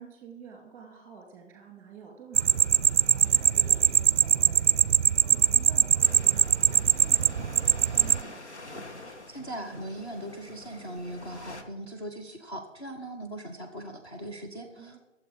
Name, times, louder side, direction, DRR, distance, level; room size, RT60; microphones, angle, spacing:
voice 1, 0.0-8.5 14.8-15.0, right 6 dB, 5° right, 3 dB, 2.4 m, -49 dB
sound 1, 2.3-8.2, right 7 dB, 65° right, 0.5 m, -22 dB
sound 2, 6.0-11.6, left 2 dB, 60° left, 2.1 m, -45 dB
voice 2, 9.0-15.0, right 1 dB, 20° left, 0 dB, 1.0 m, -40 dB
22.5 x 7.8 x 5.0 m, 1.1 s
figure-of-eight pair, 145°, 38 cm